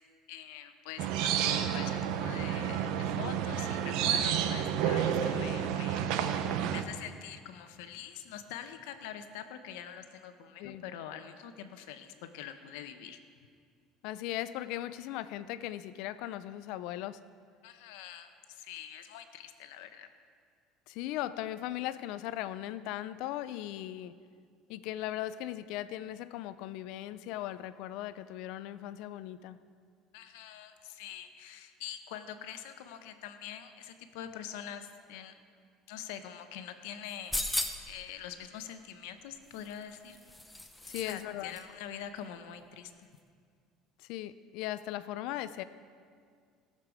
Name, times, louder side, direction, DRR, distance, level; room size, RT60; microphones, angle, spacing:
voice 1, 0.3-6.5 6.7-13.2 17.6-20.1 30.1-35.3 35.9-40.2 41.0-43.1, left 9 dB, 90° left, 9 dB, 0.8 m, -45 dB
sound 1, 1.0-6.8, right 9 dB, 70° right, 0.6 m, -30 dB
voice 2, 14.0-17.2 20.9-24.1 24.7-29.6 40.9-41.5 44.1-45.6, left 13 dB, 70° left, 14 dB, 0.4 m, -38 dB
sound 2, 37.1-38.0 39.5-41.2 41.5-41.6, left 1 dB, 5° left, 0.7 m, -36 dB
17.0 x 6.7 x 4.8 m, 2.1 s
cardioid pair, 135°, 0 cm